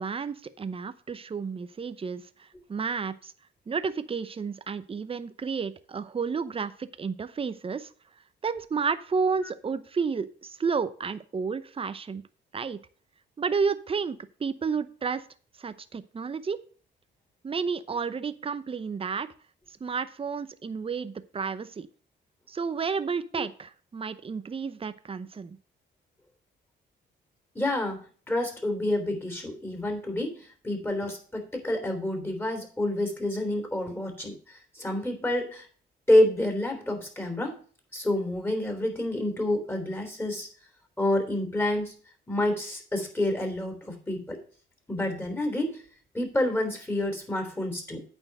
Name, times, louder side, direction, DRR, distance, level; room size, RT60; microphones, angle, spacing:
voice 1, 0.0-3.3 3.7-7.9 8.4-12.2 12.5-12.8 13.4-15.2 15.6-16.6 17.4-19.3 19.8-21.9 22.5-25.6, right 5 dB, 30° right, 13 dB, 0.7 m, -31 dB
voice 2, 27.5-28.0 28.3-34.3 34.7-35.7 36.1-37.6 37.9-40.5 41.0-42.0 42.3-44.4 44.9-45.8 46.1-48.0, left 1 dB, 10° left, 4 dB, 3.2 m, -28 dB
8.9 x 4.6 x 7.6 m, 0.42 s
cardioid pair, 90°, 20 cm